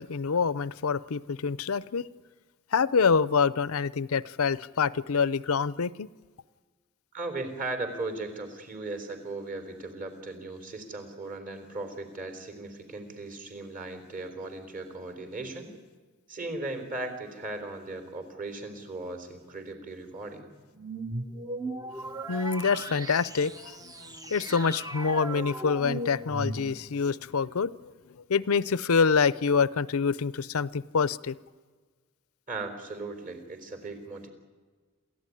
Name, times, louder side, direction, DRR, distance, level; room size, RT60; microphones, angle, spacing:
voice 1, 0.0-2.1 2.7-6.1 22.3-23.9 24.3-27.7 28.3-31.3, left 5 dB, 75° left, 0.6 m, -26 dB
voice 2, 7.1-15.7 16.3-20.5 32.5-34.3, right 2 dB, 40° right, 4.0 m, -37 dB
sound 1, 20.8-27.1, right 1 dB, 15° right, 0.9 m, -37 dB
27.5 x 15.0 x 9.9 m
head